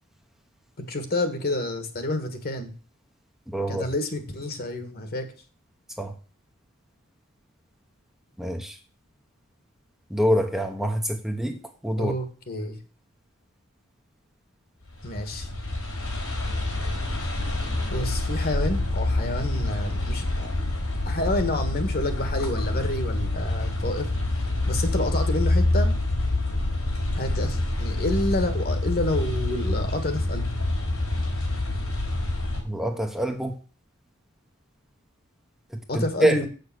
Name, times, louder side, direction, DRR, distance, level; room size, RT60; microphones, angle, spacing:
voice 1, 0.8-2.7 3.7-5.3 12.0-12.8 15.0-15.5 17.9-20.5 21.0-25.9 27.1-30.5 35.9-36.5, left 1 dB, 45° left, 7 dB, 1.7 m, -29 dB
voice 2, 3.5-3.9 6.0-6.1 8.4-8.8 10.1-12.1 32.6-33.6 35.9-36.4, equal, ahead, 3 dB, 0.9 m, -25 dB
sound 1, 14.9-32.6, left 2 dB, 80° left, 4.4 m, -27 dB
7.8 x 6.8 x 6.2 m, 0.38 s
head